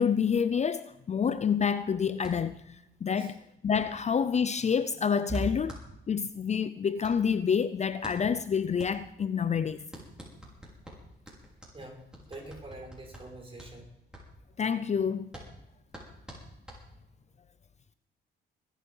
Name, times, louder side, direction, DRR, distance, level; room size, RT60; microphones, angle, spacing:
voice 1, 0.0-5.7 6.1-9.9 14.6-15.3, left 7 dB, 35° left, 0.5 m, -28 dB
sound 1, 2.2-17.3, equal, 5° right, 5.2 m, -49 dB
voice 2, 11.7-13.8, right 2 dB, 25° right, 5.2 m, -40 dB
21.0 x 9.2 x 5.5 m
cardioid pair, 90°, 20 cm